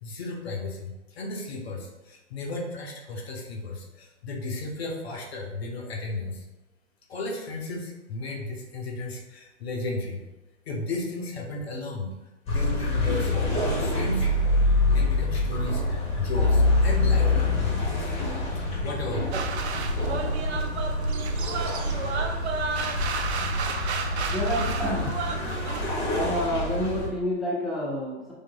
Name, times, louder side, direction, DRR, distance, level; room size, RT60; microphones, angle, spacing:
voice 1, 0.0-6.4 7.1-10.2 10.7-12.1 12.5-14.3 14.8-18.1 18.8-19.4, left 2 dB, 60° left, 0 dB, 1.1 m, -34 dB
sound 1, 12.5-27.1, left 2 dB, 20° left, 1.4 m, -26 dB
sound 2, 19.3-25.8, right 5 dB, 65° right, 0.6 m, -32 dB
voice 2, 24.3-25.2 26.1-28.3, equal, ahead, -7 dB, 0.8 m, -29 dB
6.6 x 3.1 x 2.2 m, 1.0 s
figure-of-eight pair, 110°, 35 cm